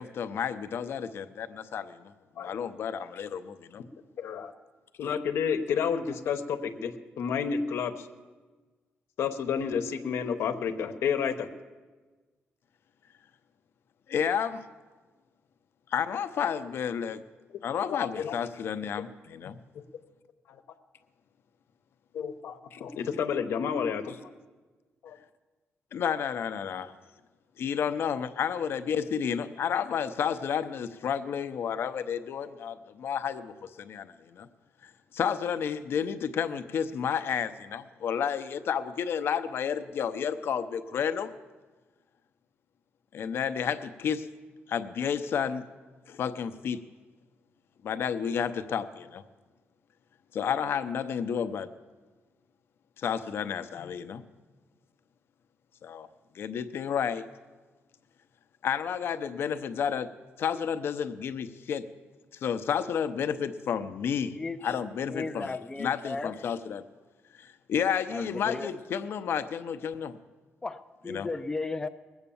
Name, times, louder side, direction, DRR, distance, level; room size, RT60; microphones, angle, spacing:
voice 1, 0.0-2.1 2.4-3.8 14.1-14.6 15.9-17.2 17.6-19.6 22.7-22.8 25.9-26.9 27.6-34.5 35.1-41.3 43.1-44.3 44.7-45.6 46.1-46.8 47.8-49.2 50.3-51.7 53.0-54.2 55.8-56.1 56.3-57.2 58.6-60.1 60.4-61.8 62.4-64.4 64.6-66.8 67.4-70.2 71.1-71.3, left 7 dB, 65° left, 10 dB, 0.7 m, -31 dB
voice 2, 4.2-4.5 5.0-8.1 9.2-11.5 17.9-18.4 22.1-24.2 25.0-25.2, left 7 dB, 85° left, 7 dB, 1.0 m, -30 dB
voice 3, 65.1-66.3 68.1-68.7 70.6-71.9, left 3 dB, 15° left, 7 dB, 0.4 m, -35 dB
20.5 x 8.1 x 7.1 m, 1.3 s
wide cardioid pair, 155°, 4 cm